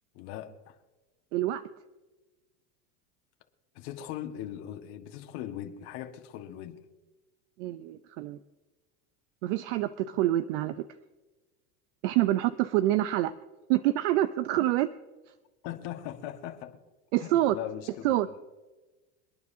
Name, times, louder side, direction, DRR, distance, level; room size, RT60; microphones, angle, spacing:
voice 1, 0.1-0.7 3.7-6.8 15.6-16.8 17.2-18.4, left 11 dB, 60° left, 5 dB, 1.6 m, -40 dB
voice 2, 1.3-1.6 7.6-8.4 9.4-10.7 12.0-13.3 13.7-14.9 17.1-17.6 18.0-18.3, right 14 dB, 70° right, 12 dB, 0.7 m, -26 dB
28.0 x 9.6 x 2.8 m, 1.2 s
supercardioid pair, 125°, 38 cm